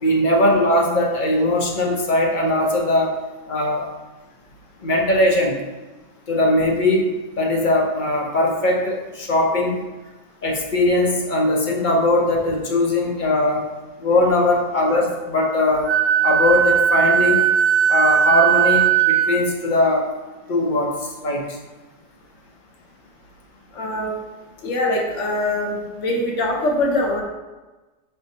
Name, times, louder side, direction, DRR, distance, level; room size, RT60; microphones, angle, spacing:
voice 1, 0.0-3.1 3.5-3.8 4.8-5.6 6.3-7.0 7.3-9.8 10.4-13.7 14.0-15.9 16.2-17.4 17.9-20.0 20.5-20.9 21.2-21.6, left 1 dB, 45° left, -1 dB, 0.7 m, -20 dB
Wind instrument woodwind instrument, 15.9-19.4, right 8 dB, 60° right, 0.6 m, -17 dB
voice 2, 23.7-24.1 24.6-27.2, left 1 dB, 75° left, 0 dB, 1.1 m, -23 dB
4.8 x 3.4 x 2.7 m, 1.2 s
omnidirectional pair, 1.3 m